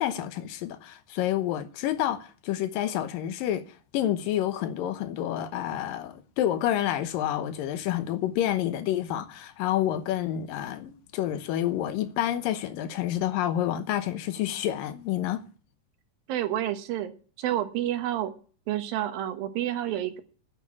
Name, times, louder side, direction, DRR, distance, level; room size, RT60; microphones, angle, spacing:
voice 1, 0.0-3.6 3.9-15.4, left 12 dB, 80° left, 2.6 m, -29 dB
voice 2, 16.3-17.1 17.4-18.3 18.7-20.2, right 12 dB, 85° right, 3.0 m, -29 dB
9.8 x 9.2 x 8.6 m
omnidirectional pair, 4.1 m